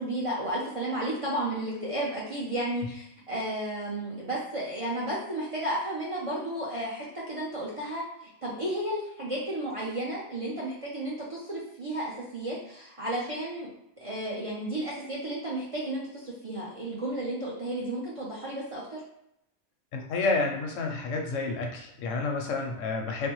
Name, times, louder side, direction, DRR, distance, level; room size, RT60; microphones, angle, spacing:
voice 1, 0.0-8.0 8.4-13.7 14.0-19.0, right 1 dB, 40° right, -7 dB, 0.5 m, -33 dB
voice 2, 19.9-23.3, left 3 dB, 85° left, 2 dB, 1.0 m, -30 dB
3.3 x 2.1 x 3.0 m, 0.77 s
omnidirectional pair, 1.3 m